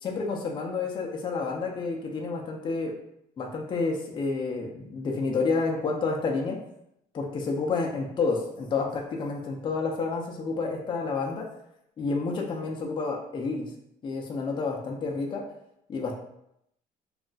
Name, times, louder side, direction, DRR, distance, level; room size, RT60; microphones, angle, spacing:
voice 1, 0.0-2.9 3.4-6.6 7.1-11.5 12.0-13.7 14.0-15.4 15.9-16.2, left 4 dB, 30° left, 1 dB, 0.4 m, -29 dB
2.2 x 2.1 x 3.8 m, 0.78 s
cardioid pair, 135°, 16 cm